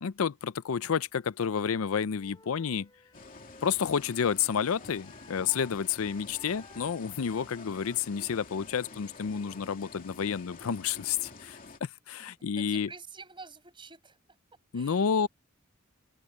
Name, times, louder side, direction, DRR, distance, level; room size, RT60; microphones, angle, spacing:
voice 1, 0.0-2.9 3.6-12.9 14.7-15.3, left 7 dB, 80° left, 0.5 m, -30 dB
Wind instrument woodwind instrument, 2.2-5.7 6.0-9.8, left 3 dB, 20° left, 3.4 m, -58 dB
sound 1, 3.1-11.8, left 3 dB, 40° left, 2.9 m, -49 dB
voice 2, 12.3-14.2 14.7-15.1, right 4 dB, 25° right, 5.7 m, -48 dB
open air
head